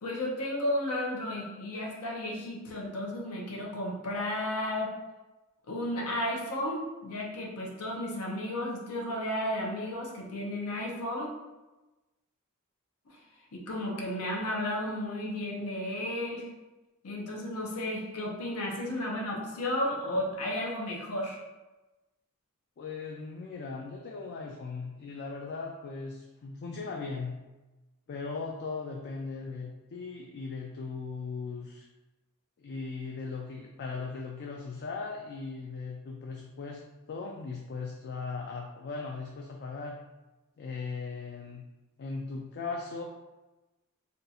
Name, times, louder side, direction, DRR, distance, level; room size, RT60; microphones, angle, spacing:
voice 1, 0.0-4.9 5.7-11.3 13.1-13.2 13.5-16.5 17.0-21.4, left 1 dB, 80° left, -2 dB, 0.7 m, -33 dB
voice 2, 22.8-27.3 28.1-31.9 32.6-36.8 37.1-40.0 40.6-41.6 42.0-43.0, left 4 dB, 50° left, 0 dB, 0.3 m, -38 dB
2.6 x 2.3 x 4.1 m, 1.1 s
head